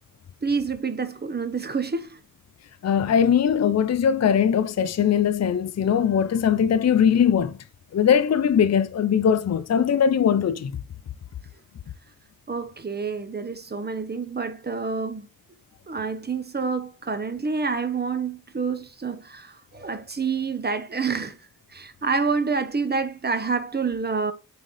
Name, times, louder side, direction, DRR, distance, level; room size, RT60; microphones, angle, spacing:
voice 1, 0.4-2.2 12.5-15.3 15.9-21.4 21.7-24.3, right 5 dB, 30° right, 1.1 m, -28 dB
voice 2, 2.8-7.6 7.9-10.7, left 8 dB, 50° left, 0.5 m, -20 dB
9.1 x 3.8 x 3.3 m
wide cardioid pair, 80°, 34 cm